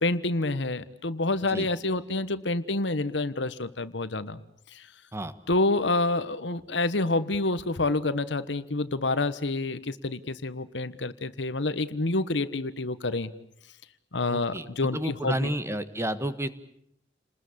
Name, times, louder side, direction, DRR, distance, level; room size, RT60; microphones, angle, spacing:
voice 1, 0.0-4.4 4.7-4.9 5.5-13.3 14.1-15.5, left 2 dB, 70° left, 14 dB, 1.2 m, -28 dB
voice 2, 14.3-14.7 14.9-16.5, right 1 dB, 15° right, 11 dB, 1.5 m, -30 dB
30.0 x 20.5 x 8.5 m, 0.75 s
head